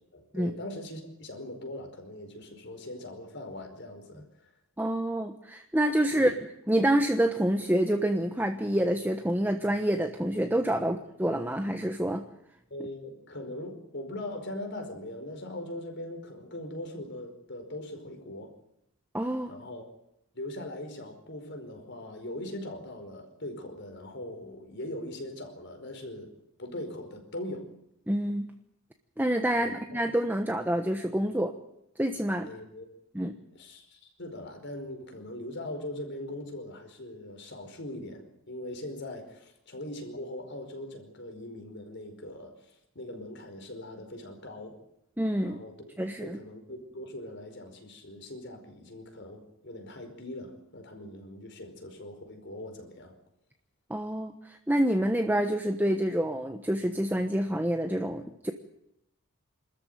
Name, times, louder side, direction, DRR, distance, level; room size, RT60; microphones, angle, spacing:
voice 1, 0.1-4.5 6.1-6.4 10.8-10.9 12.7-18.5 19.5-19.8 20.3-26.3 26.6-27.7 29.5-30.0 32.4-32.9 33.5-44.8 45.4-45.9 46.2-53.1, left 1 dB, 55° left, 5 dB, 4.9 m, -41 dB
voice 2, 4.8-6.3 6.7-12.2 19.1-19.5 28.1-28.5 29.2-31.5 32.0-32.5 33.1-33.4 45.2-45.6 46.0-46.4 53.9-58.5, right 1 dB, 10° right, 6 dB, 1.1 m, -27 dB
26.5 x 14.0 x 9.5 m, 0.81 s
head